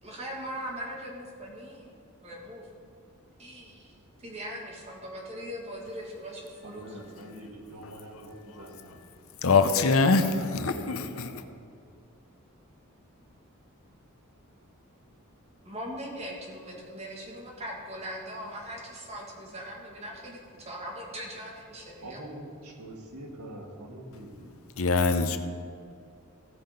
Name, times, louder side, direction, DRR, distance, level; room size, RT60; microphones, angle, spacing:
voice 1, 0.0-1.9 2.2-2.6 3.4-7.0 15.7-22.2, equal, 30° right, -2 dB, 2.0 m, -40 dB
voice 2, 6.6-9.0 10.2-11.6 22.0-24.5, right 1 dB, 85° right, 0 dB, 1.8 m, -44 dB
voice 3, 9.4-10.2 10.5-11.3 24.8-25.4, left 4 dB, 70° left, 8 dB, 0.7 m, -23 dB
16.0 x 5.8 x 5.2 m, 2.3 s
head